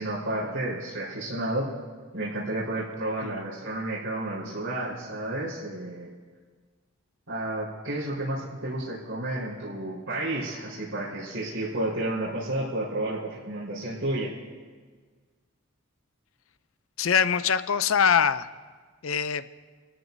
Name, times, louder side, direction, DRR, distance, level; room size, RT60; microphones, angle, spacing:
voice 1, 0.0-1.7 2.1-6.1 7.3-14.3, right 1 dB, 80° right, -10 dB, 4.4 m, -31 dB
voice 2, 17.0-18.5 19.0-19.5, left 7 dB, 70° left, 14 dB, 0.5 m, -23 dB
27.0 x 14.5 x 2.7 m, 1.5 s
head